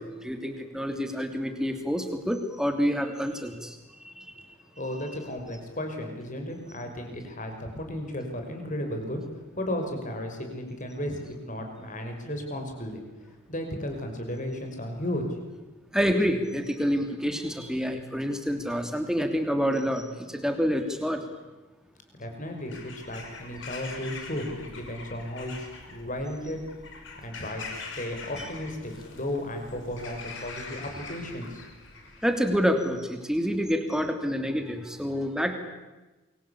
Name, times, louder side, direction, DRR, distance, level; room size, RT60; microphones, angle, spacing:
voice 1, 0.0-4.5 15.9-21.2 32.2-35.6, equal, 5° right, 6 dB, 2.9 m, -28 dB
voice 2, 4.8-13.0 13.5-15.3 22.1-26.6 27.2-31.6, left 1 dB, 35° left, 4 dB, 5.9 m, -34 dB
Bird vocalization bird call bird song / Crow, 22.6-32.4, left 4 dB, 55° left, 5.8 m, -43 dB
28.5 x 23.5 x 8.6 m, 1.1 s
head